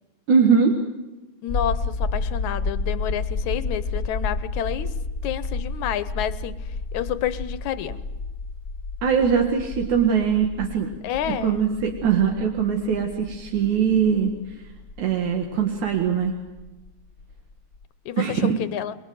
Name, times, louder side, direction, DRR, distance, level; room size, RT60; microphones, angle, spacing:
voice 1, 0.3-0.8 9.0-10.9 11.3-14.3 15.0-16.3 18.2-18.5, right 7 dB, 80° right, 3.2 m, -21 dB
voice 2, 1.4-5.0 5.2-6.6 6.9-8.0 11.0-11.6 18.1-19.0, left 10 dB, 80° left, 2.4 m, -29 dB
sound 1, 1.5-17.5 17.8-17.9, left 3 dB, 35° left, 1.6 m, -31 dB
28.0 x 20.5 x 7.9 m
omnidirectional pair, 3.3 m